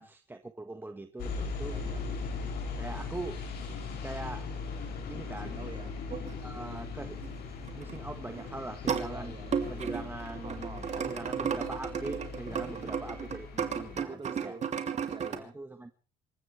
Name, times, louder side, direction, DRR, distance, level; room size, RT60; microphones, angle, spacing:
voice 1, 0.0-1.8 2.8-3.4 4.0-4.5 5.1-5.6 6.4-7.2 7.7-9.3 9.7-14.5 15.4-15.9, right 2 dB, 10° right, 1.5 m, -42 dB
sound 1, 1.2-14.0, left 4 dB, 75° left, 7.3 m, -39 dB
voice 2, 1.6-2.1 5.2-6.0 9.1-11.2 12.4-12.9 13.9-14.7 15.0-15.6, right 4 dB, 30° right, 3.9 m, -48 dB
sound 2, 6.1-6.3 7.2-7.4 7.6-8.0 8.3-9.1 9.5-15.4, right 7 dB, 45° right, 3.0 m, -34 dB
27.5 x 15.0 x 3.4 m
cardioid pair, 110°, 17 cm